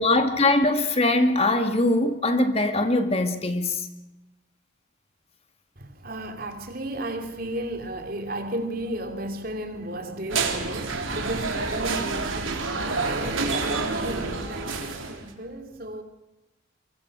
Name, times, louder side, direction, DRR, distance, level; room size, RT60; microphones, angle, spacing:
voice 1, 0.0-3.9, left 2 dB, 30° left, 1.9 m, -22 dB
voice 2, 5.8-16.0, right 1 dB, 45° right, 3.0 m, -34 dB
sound 1, 10.3-15.3, right 3 dB, 85° right, 3.9 m, -28 dB
24.5 x 24.0 x 6.2 m
head